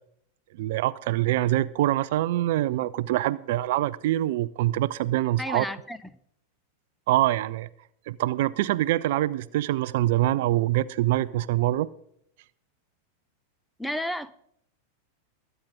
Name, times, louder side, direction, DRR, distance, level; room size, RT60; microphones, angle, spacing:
voice 1, 0.5-5.7 7.1-7.7 8.1-11.9, right 15 dB, 50° right, 0.4 m, -25 dB
voice 2, 5.4-6.0 13.8-14.3, left 1 dB, ahead, 0.7 m, -31 dB
21.5 x 9.0 x 3.8 m
figure-of-eight pair, 90°, 0 cm